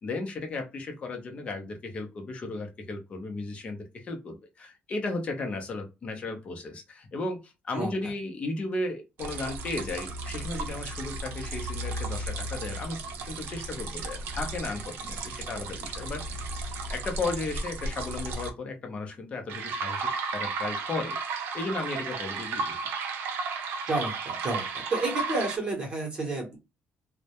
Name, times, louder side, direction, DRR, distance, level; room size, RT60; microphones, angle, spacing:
voice 1, 0.0-13.0 13.3-16.2 16.9-22.8, left 2 dB, 30° left, 4 dB, 0.6 m, -35 dB
sound 1, 9.2-18.5 19.5-25.6, right 3 dB, 65° right, 0.5 m, -34 dB
voice 2, 23.9-26.6, right 2 dB, 25° right, -1 dB, 0.8 m, -30 dB
2.2 x 2.1 x 2.7 m, 0.25 s
cardioid pair, 165°, 4 cm